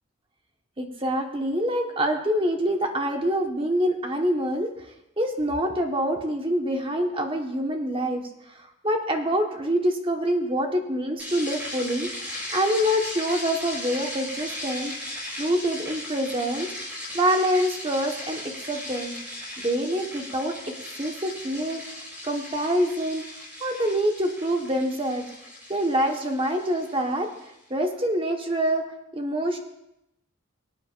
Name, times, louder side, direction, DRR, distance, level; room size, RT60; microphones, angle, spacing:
voice 1, 0.8-4.7 5.2-8.3 8.8-14.9 15.4-16.7 17.1-18.4 18.7-19.2 19.6-20.6 21.0-23.2 23.6-25.3 25.7-27.3 27.7-28.8 29.1-29.6, equal, 25° right, 3 dB, 1.3 m, -26 dB
sound 1, 11.2-27.5, left 1 dB, 10° right, 4.8 m, -37 dB
23.5 x 8.8 x 2.5 m, 0.85 s
head